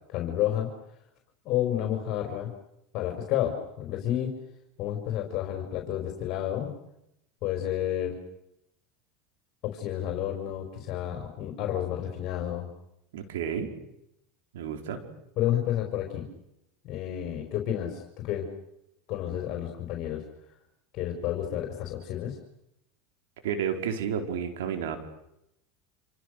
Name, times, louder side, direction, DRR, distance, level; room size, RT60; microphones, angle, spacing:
voice 1, 0.1-0.7 1.5-2.5 2.9-4.3 4.8-6.7 7.4-8.2 9.6-12.7 15.4-16.3 16.8-18.5 19.1-20.2 20.9-22.4, left 11 dB, 55° left, 3 dB, 5.1 m, -30 dB
voice 2, 13.1-13.7 14.5-15.0 23.4-25.0, right 7 dB, 85° right, 6 dB, 4.5 m, -31 dB
28.5 x 28.0 x 6.6 m, 0.83 s
supercardioid pair, 110°, 0 cm